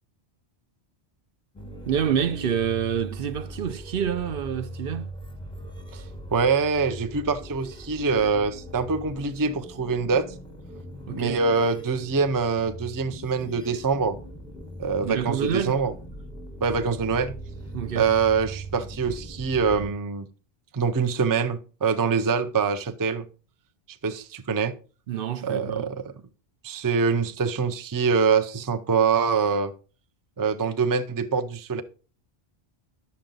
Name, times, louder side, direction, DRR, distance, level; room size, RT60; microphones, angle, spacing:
sound 1, 1.6-19.9, equal, 5° left, 1.1 m, -40 dB
voice 1, 1.9-5.1 11.1-11.4 15.0-15.8 17.7-18.1 25.1-25.9, right 8 dB, 65° right, 0.8 m, -27 dB
voice 2, 6.3-10.3 11.1-14.2 14.8-15.9 16.6-17.3 17.9-20.3 20.7-23.3 24.0-24.7 25.4-26.1 26.6-29.7 30.4-31.8, right 5 dB, 30° right, 0.4 m, -24 dB
10.5 x 6.9 x 3.9 m
omnidirectional pair, 1.1 m